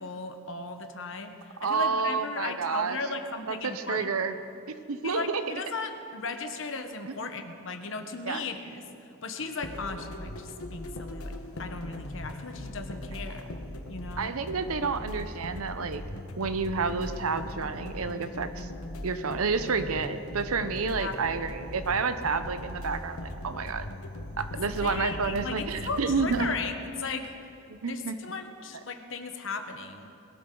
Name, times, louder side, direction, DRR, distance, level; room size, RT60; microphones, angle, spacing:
voice 1, 0.0-4.1 5.0-13.5 13.9-14.3 21.0-21.2 21.4-21.5 24.8-26.7 27.0-27.3 27.9-30.1, left 4 dB, 60° left, 6 dB, 1.1 m, -36 dB
voice 2, 1.6-3.0 3.5-4.3 4.9-5.4 8.2-8.4 14.2-16.0 16.4-18.7 19.0-23.9 24.4-26.5 27.7-28.1, right 5 dB, 85° right, 10 dB, 0.8 m, -29 dB
sound 1, 9.4-26.6, left 1 dB, 85° left, 1.1 m, -39 dB
21.5 x 12.5 x 3.9 m, 2.7 s
head